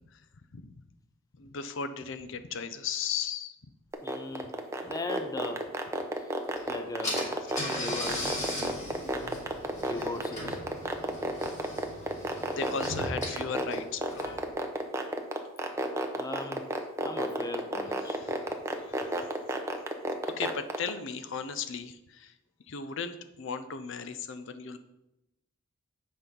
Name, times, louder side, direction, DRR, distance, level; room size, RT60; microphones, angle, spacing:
voice 1, 1.4-3.6 12.4-14.4 18.1-19.1 20.4-22.3 22.7-24.8, left 6 dB, 60° left, 11 dB, 0.5 m, -36 dB
sound 1, 3.9-20.9, right 1 dB, 15° right, 0.7 m, -30 dB
voice 2, 4.0-4.5 4.8-5.6 6.2-6.4 6.7-7.5 7.8-8.3 9.8-10.6 14.2-14.4 16.2-18.2, left 2 dB, 15° left, 6 dB, 0.6 m, -38 dB
Car / Engine, 6.6-6.7 7.0-14.5, left 1 dB, 35° left, 2.8 m, -38 dB
8.3 x 5.5 x 5.2 m, 0.91 s
head